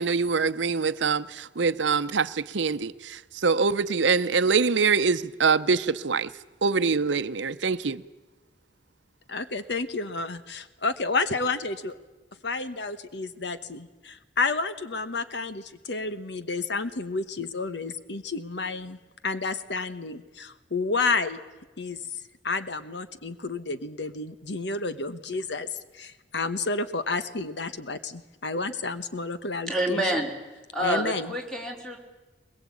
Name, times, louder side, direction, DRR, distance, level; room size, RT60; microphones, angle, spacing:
voice 1, 0.0-6.3 6.6-8.0, right 5 dB, 85° right, 0.8 m, -24 dB
voice 2, 9.3-11.9 12.4-19.0 19.2-21.4 21.8-22.0 22.4-25.7 26.0-30.0 30.8-31.3, left 3 dB, 70° left, 1.2 m, -30 dB
voice 3, 29.7-30.3 30.7-32.0, right 1 dB, 5° left, 4.0 m, -28 dB
22.0 x 21.5 x 8.6 m
head